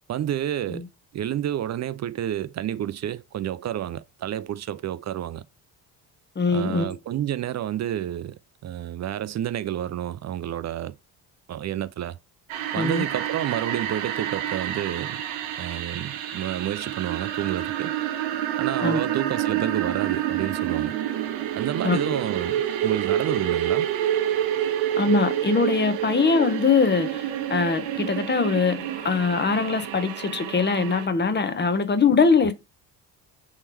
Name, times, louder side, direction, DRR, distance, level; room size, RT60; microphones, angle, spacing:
voice 1, 0.1-0.9 1.1-5.4 6.5-11.0 11.5-12.2 12.7-15.2 15.6-17.9 18.6-21.0 21.6-23.9 32.4-32.5, right 11 dB, 40° right, 0.4 m, -30 dB
voice 2, 6.4-7.0 12.8-13.0 18.8-19.0 21.8-22.1 25.0-32.5, left 5 dB, 25° left, 0.7 m, -22 dB
sound 1, 12.5-31.1, right 11 dB, 80° right, 0.8 m, -28 dB
3.5 x 3.1 x 4.4 m
hypercardioid pair, 55°, 47 cm